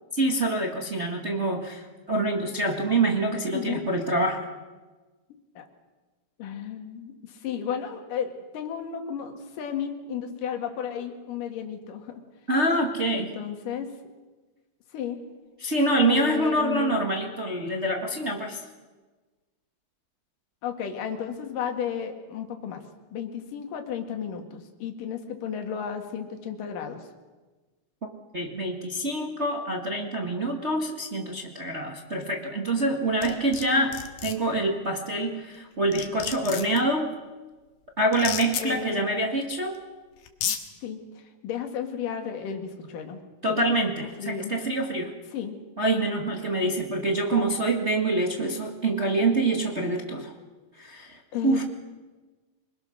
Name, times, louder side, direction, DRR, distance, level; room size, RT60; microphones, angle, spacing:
voice 1, 0.2-4.4 12.5-13.3 15.6-18.6 28.3-34.0 34.2-37.1 38.0-39.8 43.4-45.1 45.8-50.3 50.8-51.6, right 2 dB, 65° right, 1 dB, 0.6 m, -26 dB
voice 2, 3.5-3.8 5.5-5.7 6.4-12.2 13.1-13.9 14.9-15.2 16.0-17.0 20.6-22.8 23.1-27.0 33.7-33.9 38.6-39.0 40.8-43.2 43.5-43.6 44.0-44.9 45.3-45.6 51.3-51.6, left 8 dB, 65° left, 4 dB, 3.5 m, -33 dB
sound 1, 33.2-33.6 33.9-34.3 35.5-35.6 35.9-36.8 38.1-38.6 39.8-39.9 40.3-40.6, left 9 dB, 85° left, 3.5 m, -31 dB
26.0 x 21.5 x 6.5 m, 1.3 s
omnidirectional pair, 4.4 m